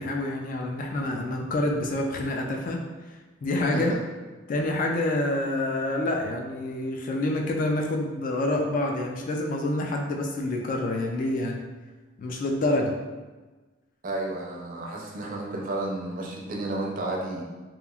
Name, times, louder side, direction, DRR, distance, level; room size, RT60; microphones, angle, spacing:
voice 1, 0.0-2.8 3.4-3.9 4.5-11.6 12.2-13.0, left 1 dB, 45° left, 1 dB, 0.3 m, -27 dB
voice 2, 14.0-17.4, right 2 dB, 45° right, -2 dB, 0.5 m, -32 dB
2.9 x 2.4 x 2.3 m, 1.2 s
head